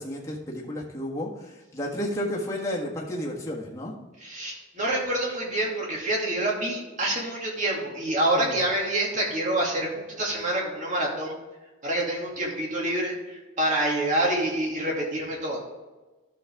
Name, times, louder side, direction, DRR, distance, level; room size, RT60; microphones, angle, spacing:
voice 1, 0.0-3.9 8.3-8.6, equal, 15° left, -4 dB, 1.5 m, -32 dB
voice 2, 4.2-11.3 11.8-15.6, right 1 dB, 35° right, -2 dB, 2.4 m, -27 dB
12.0 x 6.5 x 3.6 m, 1.2 s
head